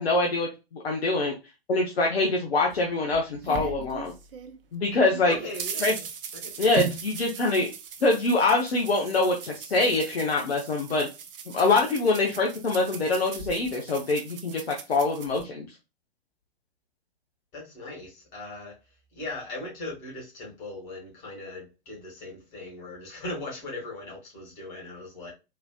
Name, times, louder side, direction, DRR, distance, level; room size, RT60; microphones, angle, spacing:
voice 1, 0.0-1.3 1.7-4.1 4.7-5.3 5.8-5.9 6.6-7.7 8.0-11.1 11.5-14.6 14.9-15.7, left 3 dB, 70° left, 0 dB, 0.9 m, -24 dB
sound 1, 2.7-4.6 4.9-15.4, right 6 dB, 60° right, 0.7 m, -39 dB
voice 2, 5.3-6.1 6.3-6.8 17.5-18.7 19.1-25.3, left 2 dB, 45° left, -1 dB, 2.2 m, -39 dB
4.0 x 2.7 x 2.3 m, 0.27 s
figure-of-eight pair, 100°, 32 cm